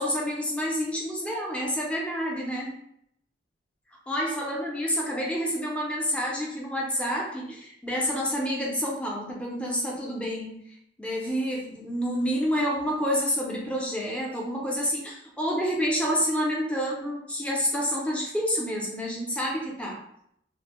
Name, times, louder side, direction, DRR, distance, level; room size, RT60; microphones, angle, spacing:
voice 1, 0.0-2.8 4.1-10.6 11.0-20.0, equal, 5° left, -3 dB, 0.5 m, -28 dB
2.5 x 2.0 x 2.9 m, 0.71 s
head